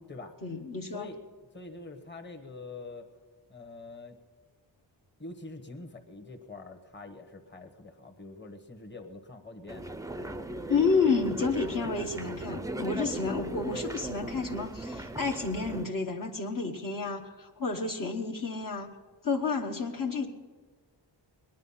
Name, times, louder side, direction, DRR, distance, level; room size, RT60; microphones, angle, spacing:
voice 1, 0.4-1.1 10.7-18.9 19.2-20.3, left 4 dB, 45° left, 0 dB, 1.2 m, -30 dB
voice 2, 1.5-3.1 3.5-4.2 5.2-9.9, left 3 dB, 25° left, 4 dB, 1.3 m, -45 dB
sound 1, 9.7-15.9, right 1 dB, 10° right, 0.5 m, -38 dB
19.5 x 10.5 x 5.7 m, 1.4 s
wide cardioid pair, 90°, 45 cm